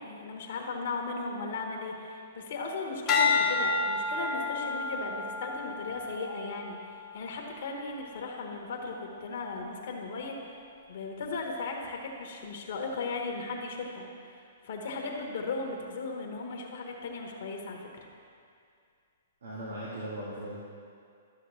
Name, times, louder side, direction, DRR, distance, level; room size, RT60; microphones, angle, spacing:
voice 1, 0.0-10.6 10.9-17.9, left 3 dB, 60° left, 1 dB, 1.3 m, -37 dB
sound 1, 3.1-7.5 8.1-8.5, left 4 dB, 25° left, 1.0 m, -30 dB
voice 2, 19.4-20.6, right 1 dB, 80° right, -7 dB, 1.6 m, -38 dB
12.5 x 6.5 x 3.2 m, 2.3 s
hypercardioid pair, 135°, 0 cm